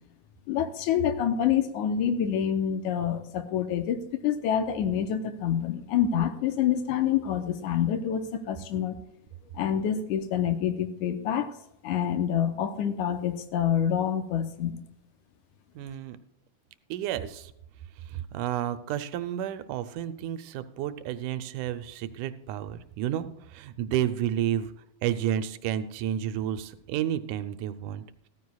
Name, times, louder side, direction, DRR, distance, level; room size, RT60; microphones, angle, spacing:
voice 1, 0.5-9.0 9.5-11.5 11.8-14.8, left 9 dB, 85° left, 8 dB, 2.3 m, -27 dB
voice 2, 15.8-16.2 16.9-17.5 18.1-24.7 25.0-28.0, right 11 dB, 90° right, 11 dB, 2.2 m, -31 dB
14.5 x 14.0 x 2.3 m, 0.82 s
omnidirectional pair, 3.5 m